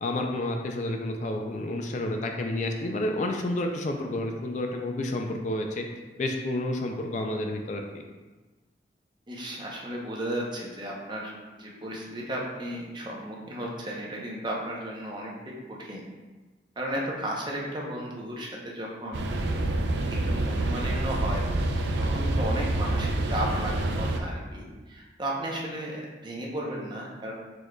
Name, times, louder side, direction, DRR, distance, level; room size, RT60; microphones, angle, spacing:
voice 1, 0.0-5.8 6.2-8.0, left 1 dB, 40° left, 3 dB, 0.3 m, -30 dB
voice 2, 9.3-11.3 11.6-16.0 16.8-19.2 20.3-21.4 22.0-27.3, right 1 dB, 25° right, -3 dB, 0.7 m, -34 dB
sound 1, 19.1-24.2, right 1 dB, 80° right, 0.4 m, -27 dB
4.5 x 4.3 x 2.2 m, 1.3 s
head